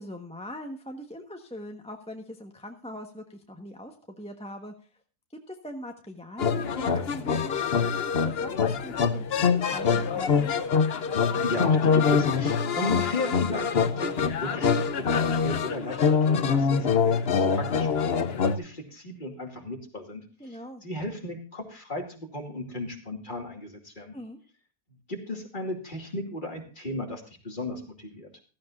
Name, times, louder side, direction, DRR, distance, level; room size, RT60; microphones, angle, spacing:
voice 1, 0.0-4.7 5.5-10.5 20.4-20.8 24.1-24.4, equal, 5° left, 3 dB, 1.2 m, -41 dB
sound 1, 6.4-18.6, left 6 dB, 45° left, 1.0 m, -24 dB
voice 2, 11.4-24.1 25.1-28.3, left 1 dB, 30° left, 3 dB, 2.6 m, -35 dB
15.5 x 14.0 x 2.5 m, 0.35 s
omnidirectional pair, 1.6 m